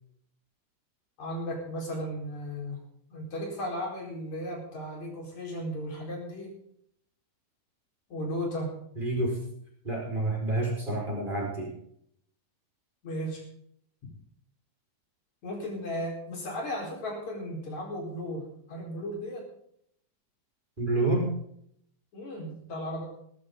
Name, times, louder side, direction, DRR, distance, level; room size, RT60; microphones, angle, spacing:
voice 1, 1.2-2.8 3.1-6.5 8.1-8.7 13.0-13.4 15.4-19.4 22.1-23.0, equal, 70° left, -1 dB, 5.9 m, -35 dB
voice 2, 9.0-9.4 9.8-11.7 20.8-21.3, right 2 dB, 15° right, -1 dB, 5.3 m, -28 dB
19.0 x 13.0 x 3.9 m, 0.69 s
omnidirectional pair, 3.4 m